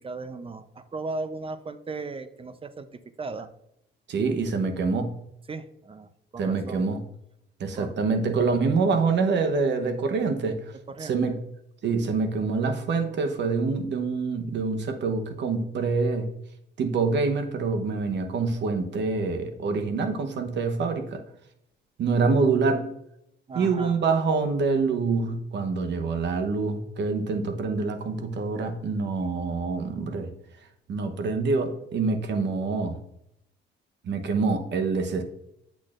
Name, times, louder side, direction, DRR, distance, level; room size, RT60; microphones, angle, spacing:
voice 1, 0.0-3.5 5.5-6.8 7.8-7.9 10.9-11.2 23.5-24.0, right 3 dB, 30° right, 12 dB, 0.6 m, -37 dB
voice 2, 4.1-5.1 6.4-7.0 7.6-10.7 11.0-11.4 11.8-16.3 16.8-21.2 22.0-22.9 23.5-30.3 30.9-33.0 34.0-35.2, right 4 dB, 65° right, 7 dB, 1.0 m, -26 dB
8.2 x 6.2 x 2.5 m, 0.77 s
cardioid pair, 90°, 20 cm